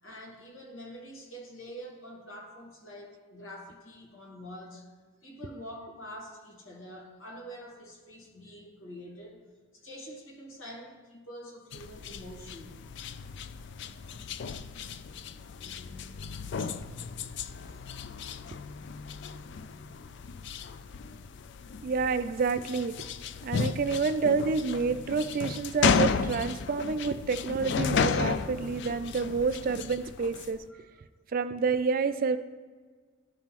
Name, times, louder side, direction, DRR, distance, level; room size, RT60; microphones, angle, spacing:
voice 1, 0.0-4.9 5.2-9.4 9.8-12.9 17.3-18.1 21.7-21.8, equal, 75° left, -2 dB, 1.9 m, -46 dB
sound 1, 11.7-30.6, left 5 dB, 55° left, 0.3 m, -34 dB
voice 2, 21.8-23.0 23.4-30.6 31.3-32.4, right 4 dB, 45° right, 11 dB, 0.3 m, -28 dB
13.0 x 5.5 x 3.0 m, 1.5 s
head